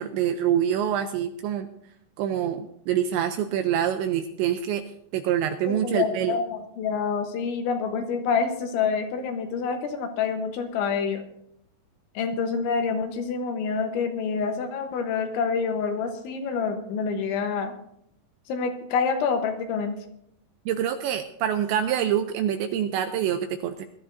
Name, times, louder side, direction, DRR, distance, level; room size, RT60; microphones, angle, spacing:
voice 1, 0.0-1.7 2.2-4.8 5.1-6.4 20.7-23.9, right 10 dB, 85° right, 7 dB, 2.6 m, -26 dB
voice 2, 5.7-11.2 12.2-17.7 18.5-20.0, left 5 dB, 75° left, 6 dB, 3.3 m, -27 dB
21.0 x 12.5 x 2.6 m, 0.74 s
omnidirectional pair, 5.7 m